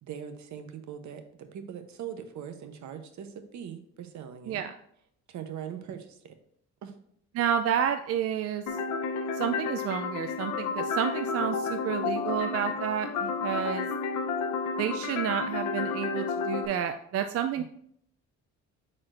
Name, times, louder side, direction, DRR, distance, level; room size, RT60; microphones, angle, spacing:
voice 1, 0.0-4.6 5.3-6.3 6.8-7.0 17.6-17.7, right 8 dB, 70° right, 8 dB, 0.9 m, -41 dB
voice 2, 7.3-8.6 9.3-13.9 14.8-17.6, right 8 dB, 50° right, 7 dB, 0.4 m, -30 dB
sound 1, 8.7-16.7, left 4 dB, 80° left, 0.8 m, -31 dB
8.7 x 4.3 x 2.5 m, 0.68 s
cardioid pair, 90°, 30 cm